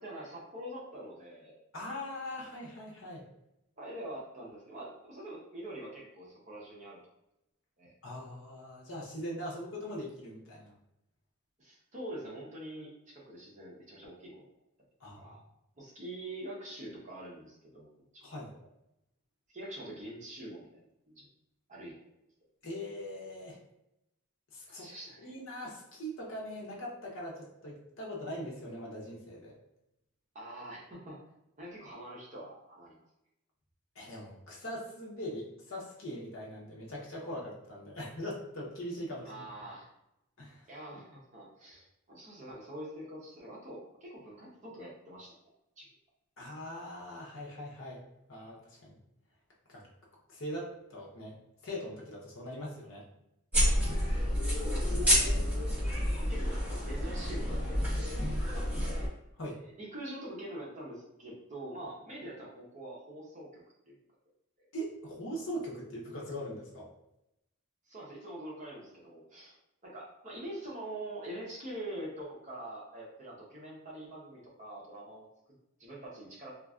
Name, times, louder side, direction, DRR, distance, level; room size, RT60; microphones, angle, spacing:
voice 1, 0.0-1.6 3.8-7.0 7.8-7.9 11.6-14.5 15.2-15.4 15.8-18.3 19.5-20.7 21.1-21.3 21.7-22.0 24.7-25.3 30.3-31.2 31.6-33.0 39.2-39.9 40.7-45.3 45.8-45.9 54.5-55.0 56.3-56.6 56.8-57.8 58.1-58.7 59.7-64.0 64.6-64.7 67.9-69.6 69.8-75.3 75.8-76.5, right 1 dB, 30° right, -5 dB, 0.7 m, -44 dB
voice 2, 1.7-3.2 8.0-10.7 15.0-15.4 18.2-18.5 22.6-23.6 24.5-24.9 25.2-29.5 33.9-39.7 40.4-40.7 46.4-49.0 49.7-49.9 50.3-51.4 51.6-53.1 59.4-59.6 64.7-66.9, equal, 60° left, -4 dB, 0.8 m, -41 dB
sound 1, 53.5-59.1, equal, 5° right, 1.3 m, -29 dB
3.1 x 2.4 x 2.4 m, 0.85 s
head